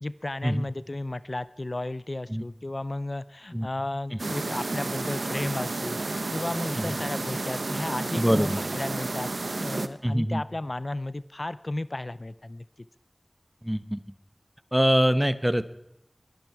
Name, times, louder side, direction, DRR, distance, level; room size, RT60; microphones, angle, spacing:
voice 1, 0.0-6.0 6.3-9.3 9.6-12.6, left 2 dB, 45° left, 16 dB, 0.4 m, -33 dB
sound 1, 4.2-9.9, right 2 dB, 90° right, 0.8 m, -31 dB
voice 2, 8.2-8.6 10.0-10.4 13.6-14.0 14.7-15.6, equal, 10° right, 13 dB, 0.8 m, -24 dB
21.5 x 10.5 x 4.7 m, 0.88 s
wide cardioid pair, 55°, 0 cm